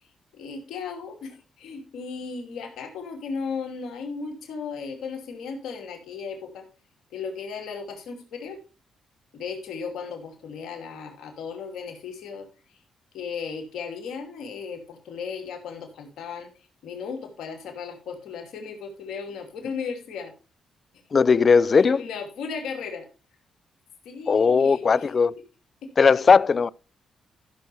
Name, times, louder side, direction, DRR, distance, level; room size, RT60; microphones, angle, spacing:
voice 1, 0.3-6.7 7.1-8.6 9.3-12.5 13.1-16.5 16.8-20.3 21.7-23.1 24.0-25.1, left 5 dB, 75° left, 2.8 m, -36 dB
voice 2, 21.1-22.0 24.3-25.3 26.0-26.7, left 5 dB, 45° left, 0.4 m, -18 dB
14.5 x 6.7 x 3.4 m
supercardioid pair, 60°, 0 cm